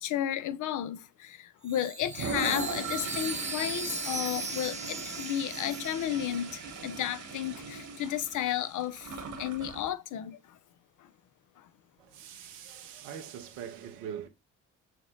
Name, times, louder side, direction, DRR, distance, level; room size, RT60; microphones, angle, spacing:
voice 1, 0.0-10.6 11.0-11.1 11.6-11.7, left 11 dB, 60° left, 0.6 m, -33 dB
Chime, 1.6-7.2, right 3 dB, 20° right, 1.0 m, -39 dB
Toilet flush, 2.0-9.9, right 4 dB, 55° right, 1.4 m, -39 dB
voice 2, 12.0-14.3, right 8 dB, 80° right, 0.9 m, -42 dB
6.1 x 2.2 x 3.7 m
hypercardioid pair, 50°, 35 cm